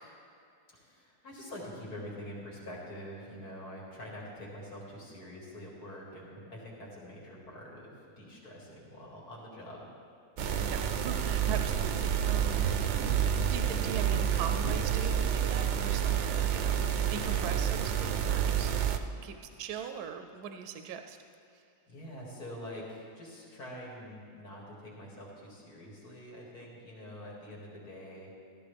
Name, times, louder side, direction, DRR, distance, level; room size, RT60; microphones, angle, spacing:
voice 1, 0.7-9.9 21.9-28.3, equal, 75° left, -4 dB, 2.8 m, -45 dB
sound 1, 10.4-19.0, right 8 dB, 65° right, 0.7 m, -29 dB
voice 2, 10.6-18.7 19.2-21.2 21.5-21.6, right 7 dB, 80° right, 6 dB, 1.1 m, -41 dB
14.0 x 13.5 x 3.4 m, 2.6 s
omnidirectional pair, 1.7 m